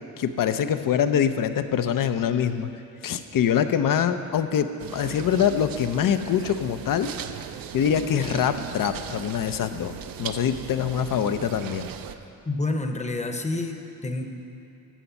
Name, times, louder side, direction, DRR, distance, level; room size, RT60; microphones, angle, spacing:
voice 1, 0.2-2.7 3.0-7.1 7.7-11.9, left 8 dB, 60° left, 10 dB, 0.7 m, -24 dB
sound 1, 4.8-12.2, right 9 dB, 65° right, 0.6 m, -38 dB
voice 2, 12.4-14.2, left 2 dB, 20° left, 5 dB, 0.9 m, -28 dB
13.0 x 5.3 x 7.1 m, 2.7 s
cardioid pair, 85°, 37 cm